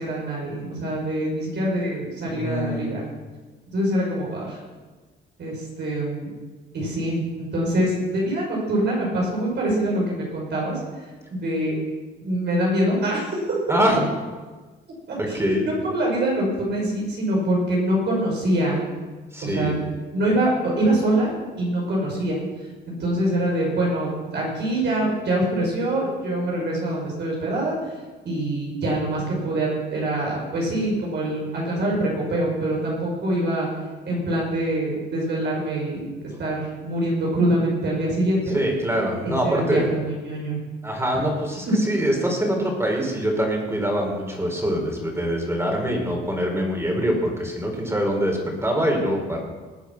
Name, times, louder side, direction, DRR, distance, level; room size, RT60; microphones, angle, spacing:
voice 1, 0.0-3.0 3.7-4.6 5.4-6.3 6.7-10.8 11.3-11.8 12.2-13.3 15.1-15.4 15.6-18.9 19.4-19.8 20.1-21.3 21.6-22.4 22.9-27.8 28.2-33.7 34.0-38.6 39.2-40.6 46.8-46.9, right 1 dB, 60° right, -4 dB, 6.1 m, -24 dB
voice 2, 2.3-3.0 13.7-14.0 15.2-15.7 19.3-19.8 38.5-39.9 40.8-49.4, equal, 15° right, 1 dB, 4.6 m, -24 dB
20.5 x 8.3 x 6.1 m, 1.3 s
cardioid pair, 90°, 20 cm